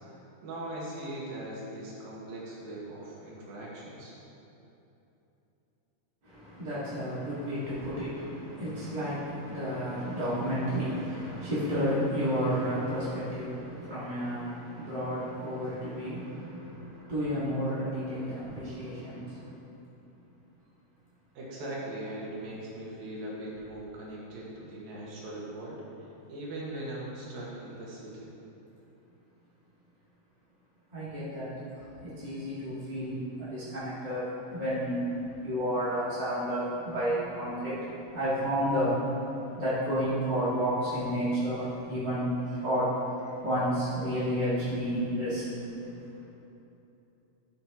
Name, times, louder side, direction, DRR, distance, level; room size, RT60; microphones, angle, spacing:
voice 1, 0.1-4.1 21.3-25.8 26.3-28.3, right 1 dB, 80° right, -5 dB, 3.4 m, -40 dB
voice 2, 6.2-19.6 30.9-35.0 35.4-37.9 38.1-39.0 39.5-45.7, equal, 25° right, -11 dB, 1.0 m, -31 dB
13.0 x 6.4 x 3.0 m, 3.0 s
omnidirectional pair, 4.1 m